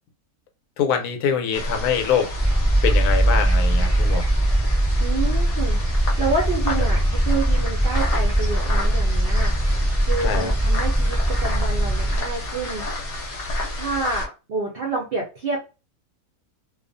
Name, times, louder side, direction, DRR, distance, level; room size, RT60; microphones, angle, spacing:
voice 1, 0.8-2.3 2.8-4.3 6.8-6.9 10.2-10.5, left 7 dB, 85° left, 1.1 m, -24 dB
sound 1, 1.5-14.2, left 1 dB, 50° left, 0.7 m, -30 dB
sound 2, 2.4-12.2, right 1 dB, 5° left, 0.7 m, -21 dB
voice 2, 5.0-5.8 6.2-9.5 10.0-13.1 13.8-15.6, right 3 dB, 65° right, 0.6 m, -28 dB
2.3 x 2.3 x 2.5 m
omnidirectional pair, 1.6 m